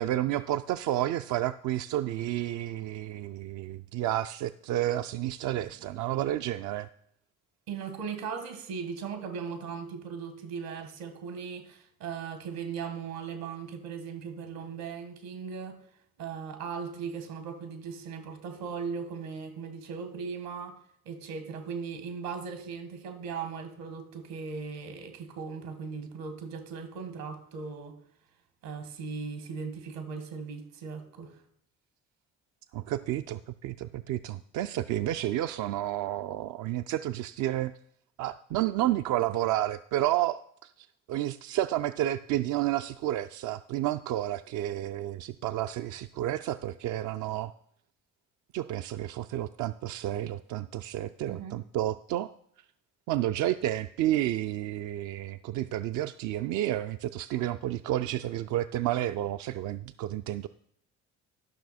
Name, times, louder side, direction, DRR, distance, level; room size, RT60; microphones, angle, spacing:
voice 1, 0.0-6.9 32.7-37.7 38.2-47.5 48.5-52.3 53.1-60.5, right 13 dB, 55° right, 0.4 m, -31 dB
voice 2, 7.7-15.8 16.2-20.8 21.0-28.0 28.6-31.4 51.3-51.6, right 6 dB, 75° right, 1.6 m, -38 dB
12.0 x 6.0 x 4.2 m
hypercardioid pair, 55°, 36 cm